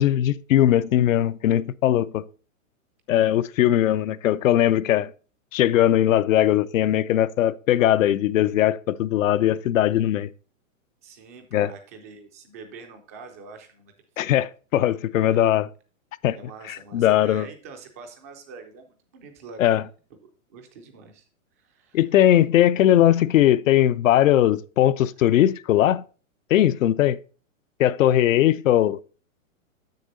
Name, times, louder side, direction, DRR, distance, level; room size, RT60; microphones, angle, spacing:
voice 1, 0.0-2.2 3.1-5.1 5.5-10.3 11.5-11.7 14.2-15.7 16.2-16.4 16.7-17.5 19.6-19.8 21.9-26.0 26.5-27.2 27.8-29.0, left 12 dB, 70° left, 0.5 m, -19 dB
voice 2, 11.0-14.4 15.3-15.5 16.3-19.8 20.2-21.3 21.6-22.0 25.2-25.3, right 4 dB, 15° right, 0.3 m, -45 dB
7.3 x 6.6 x 4.0 m
hypercardioid pair, 150°, 41 cm